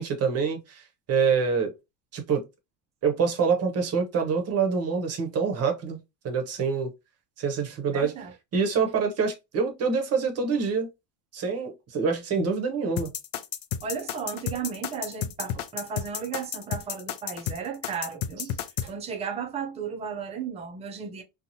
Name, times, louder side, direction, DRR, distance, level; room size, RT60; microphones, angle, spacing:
voice 1, 0.0-1.7 2.1-2.4 3.0-6.0 6.2-6.9 7.4-8.1 8.5-10.9 11.3-13.1, right 5 dB, 35° right, 0.7 m, -26 dB
voice 2, 7.9-8.3 13.8-18.6 18.8-21.2, right 6 dB, 15° right, 0.3 m, -34 dB
sound 1, 13.0-18.9, left 10 dB, 75° left, 0.6 m, -31 dB
2.8 x 2.3 x 2.6 m
cardioid pair, 135°, 46 cm